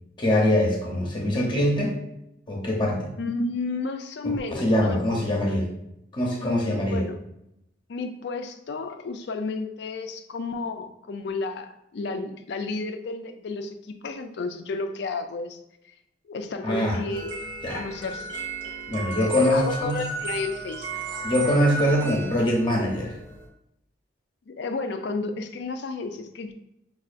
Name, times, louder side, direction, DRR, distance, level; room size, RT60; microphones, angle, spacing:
voice 1, 0.2-1.9 2.5-3.1 4.2-5.7 6.1-7.0 16.6-17.0 17.6-17.8 18.9-20.0 21.2-23.1, left 1 dB, 25° left, -1 dB, 0.7 m, -23 dB
voice 2, 3.2-5.2 6.4-7.2 7.9-15.6 16.3-18.3 19.2-20.9 24.5-26.5, left 3 dB, 65° left, 7 dB, 0.4 m, -32 dB
sound 1, 17.1-23.5, right 3 dB, 75° right, 0.8 m, -35 dB
5.4 x 2.3 x 2.5 m, 0.82 s
head